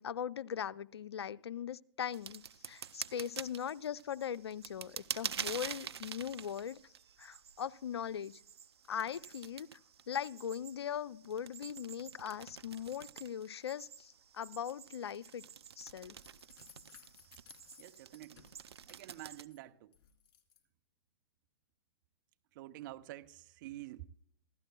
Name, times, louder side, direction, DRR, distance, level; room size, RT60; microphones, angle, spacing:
voice 1, 0.0-6.8 7.2-8.4 8.9-9.7 10.1-15.4 15.8-16.2, left 8 dB, 80° left, 0.5 m, -40 dB
sound 1, 2.1-19.5, right 7 dB, 85° right, 0.5 m, -47 dB
sound 2, 16.2-19.6 19.9-20.6, left 8 dB, 55° left, 2.7 m, -60 dB
voice 2, 17.8-18.5 18.9-20.0 22.5-24.1, right 16 dB, 50° right, 0.8 m, -48 dB
16.0 x 13.0 x 2.2 m
hypercardioid pair, 125°, 13 cm